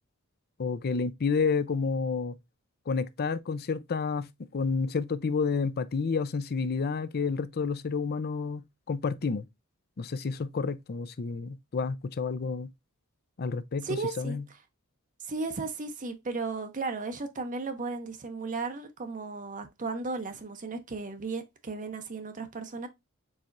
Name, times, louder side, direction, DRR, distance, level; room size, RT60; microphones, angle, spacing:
voice 1, 0.6-2.4 2.9-9.5 10.0-12.7 13.4-14.4, left 5 dB, 45° left, 0.5 m, -30 dB
voice 2, 13.8-14.4 15.2-22.9, right 3 dB, 35° right, 0.7 m, -35 dB
4.8 x 4.2 x 2.5 m
head